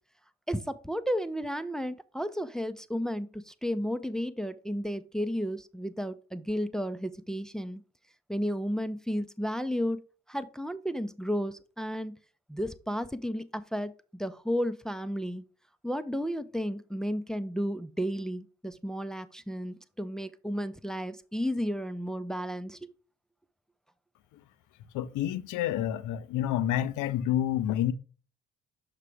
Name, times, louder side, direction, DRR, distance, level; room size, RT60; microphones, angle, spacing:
voice 1, 0.5-7.8 8.3-10.0 10.3-12.1 12.5-15.4 15.8-22.9, equal, ahead, 0.4 m, -33 dB
voice 2, 24.9-27.9, left 11 dB, 65° left, 0.6 m, -29 dB
6.5 x 4.9 x 3.3 m
hypercardioid pair, 40°, 34 cm